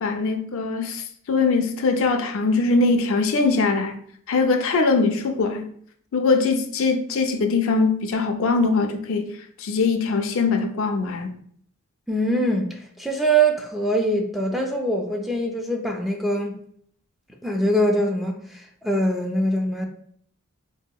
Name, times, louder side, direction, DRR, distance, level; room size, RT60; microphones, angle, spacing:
voice 1, 0.0-3.9 4.3-5.7 6.1-9.3 9.6-11.3, left 4 dB, 65° left, 0.4 m, -22 dB
voice 2, 12.1-16.5 17.4-19.9, right 1 dB, ahead, 0.3 m, -23 dB
4.6 x 2.7 x 2.2 m
head